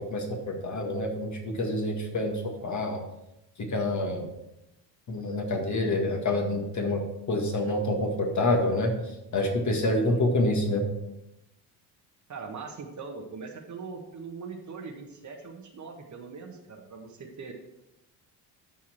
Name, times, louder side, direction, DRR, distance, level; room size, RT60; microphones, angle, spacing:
voice 1, 0.0-3.0 3.6-4.3 5.1-7.0 7.3-8.9 9.3-10.8, left 1 dB, 35° left, 2 dB, 2.0 m, -27 dB
voice 2, 9.8-10.2 12.3-17.5, right 5 dB, 35° right, 3 dB, 1.5 m, -41 dB
13.0 x 4.6 x 4.5 m, 0.91 s
figure-of-eight pair, 55°, 49 cm